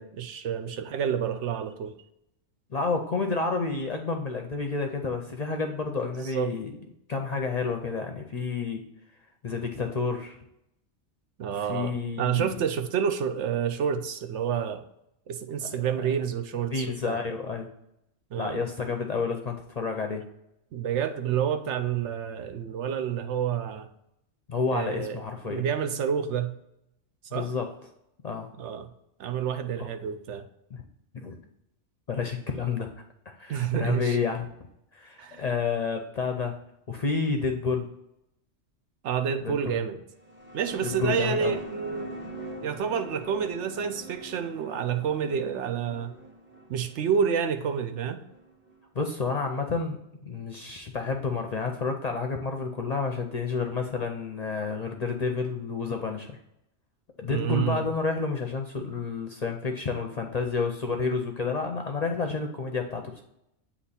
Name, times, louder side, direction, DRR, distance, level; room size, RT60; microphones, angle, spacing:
voice 1, 0.0-1.9 6.2-6.5 11.4-11.9 12.2-14.8 15.3-17.2 18.3-18.6 20.7-23.9 24.7-25.2 25.5-26.6 27.3-27.5 28.6-28.9 29.2-30.4 33.5-34.2 35.2-35.4 39.0-40.0 40.5-42.4 42.6-46.1 46.7-48.2 57.3-57.9, right 8 dB, 75° right, 9 dB, 0.9 m, -29 dB
voice 2, 2.7-6.7 7.1-8.8 9.4-10.4 11.6-12.5 15.7-15.8 16.7-17.7 18.4-20.2 24.5-25.6 27.3-27.7 28.2-28.5 29.8-29.9 30.7-30.8 31.1-31.4 32.1-32.9 33.3-34.5 34.9-36.6 36.9-37.9 39.4-39.8 40.8-41.6 48.9-50.0 50.2-56.4 57.2-63.2, left 4 dB, 45° left, 3 dB, 0.5 m, -30 dB
sound 1, 40.1-48.8, right 1 dB, 10° right, 0.7 m, -43 dB
8.5 x 2.9 x 4.1 m, 0.82 s
omnidirectional pair, 1.2 m